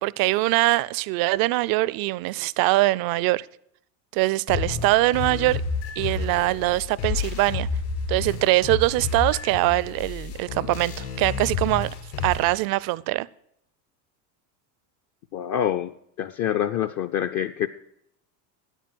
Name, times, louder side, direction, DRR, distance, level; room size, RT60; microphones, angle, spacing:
voice 1, 0.0-3.5 4.1-5.6 6.0-7.7 8.1-11.9 12.2-13.3, right 19 dB, 50° right, 0.4 m, -23 dB
sound 1, 4.5-12.5, left 5 dB, 70° left, 4.0 m, -30 dB
voice 2, 15.3-17.7, left 10 dB, 40° left, 0.5 m, -26 dB
9.2 x 9.1 x 7.7 m
supercardioid pair, 100°, 50 cm